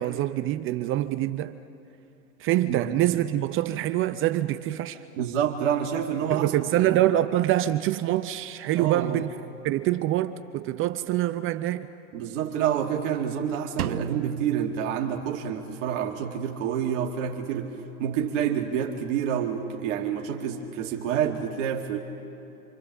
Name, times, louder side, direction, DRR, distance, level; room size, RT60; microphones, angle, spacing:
voice 1, 0.0-1.5 2.4-5.0 6.3-9.4 9.6-11.9, right 14 dB, 30° right, 0.6 m, -25 dB
voice 2, 2.6-3.0 5.1-6.5 6.8-7.0 8.7-9.2 12.1-17.7 18.0-22.0, right 8 dB, 55° right, 2.0 m, -28 dB
Drum, 13.8-15.7, right 9 dB, 85° right, 0.9 m, -34 dB
27.0 x 26.5 x 7.1 m
hypercardioid pair, 105°, 44 cm